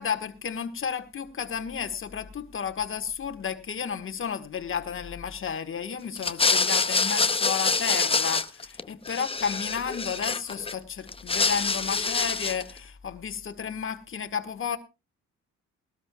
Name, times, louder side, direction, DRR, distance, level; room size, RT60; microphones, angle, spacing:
voice 1, 0.0-14.8, left 7 dB, 45° left, 1.5 m, -32 dB
sound 1, 6.2-8.8 9.1-10.7 11.1-12.7, left 4 dB, 20° left, 0.7 m, -26 dB
21.0 x 13.0 x 2.3 m
cardioid pair, 90°, 30 cm